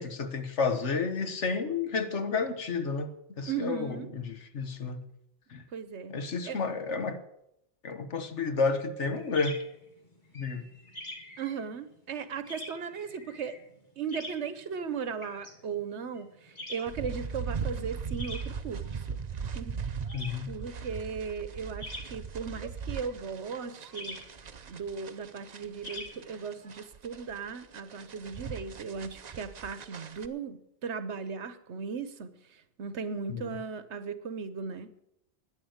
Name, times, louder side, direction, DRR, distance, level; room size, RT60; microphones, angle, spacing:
voice 1, 0.0-5.1 5.5-5.6 6.1-7.2 7.8-9.6 10.3-10.7 20.1-20.5 33.3-33.4, left 4 dB, 90° left, 1.6 m, -31 dB
voice 2, 3.5-4.1 5.7-6.2 6.4-6.6 11.4-13.6 14.0-19.2 19.5-19.7 20.5-24.2 24.7-34.9, right 6 dB, 75° right, 1.3 m, -37 dB
sound 1, 9.1-26.7, left 1 dB, 45° left, 2.8 m, -46 dB
sound 2, 16.9-30.3, right 6 dB, 45° right, 0.7 m, -39 dB
11.0 x 10.0 x 8.0 m
omnidirectional pair, 1.2 m